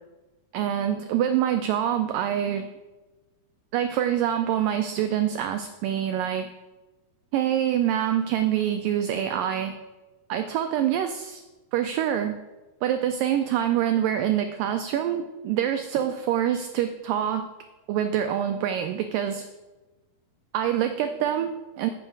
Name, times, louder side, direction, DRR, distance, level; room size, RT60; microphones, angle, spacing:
voice 1, 0.5-2.7 3.7-6.5 7.3-9.8 10.3-11.4 11.7-12.4 12.8-17.5 17.9-19.5 20.5-21.9, right 10 dB, 85° right, 7 dB, 1.9 m, -25 dB
13.5 x 8.7 x 4.7 m, 1.2 s
omnidirectional pair, 4.6 m